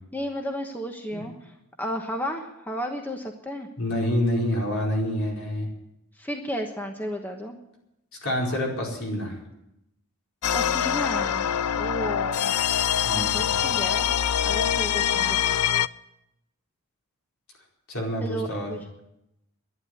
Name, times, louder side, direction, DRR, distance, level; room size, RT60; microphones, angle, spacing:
voice 1, 0.1-1.5 1.8-3.7 6.2-7.6 10.5-11.5 11.8-12.5 13.1-14.1 14.4-15.6 18.2-18.8, equal, 10° left, 3 dB, 1.1 m, -33 dB
voice 2, 3.8-5.7 8.2-9.4 13.0-13.7 17.9-18.7, left 1 dB, 65° left, -2 dB, 4.8 m, -27 dB
sound 1, 10.4-15.9, left 9 dB, 85° left, 0.4 m, -24 dB
11.5 x 11.0 x 9.7 m, 0.86 s
head